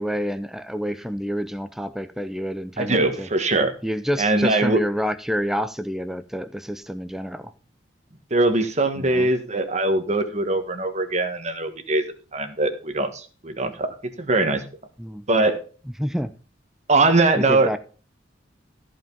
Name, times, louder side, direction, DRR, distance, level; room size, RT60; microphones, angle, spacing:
voice 1, 0.0-3.3 3.8-7.5 8.9-9.3 15.0-15.3 16.0-16.3 17.4-17.8, equal, ahead, 0.6 m, -28 dB
voice 2, 2.8-3.8 4.2-4.8 8.3-12.0 12.3-14.6 15.3-15.6 16.9-17.7, right 2 dB, 40° right, 1.4 m, -21 dB
14.0 x 5.2 x 5.3 m
head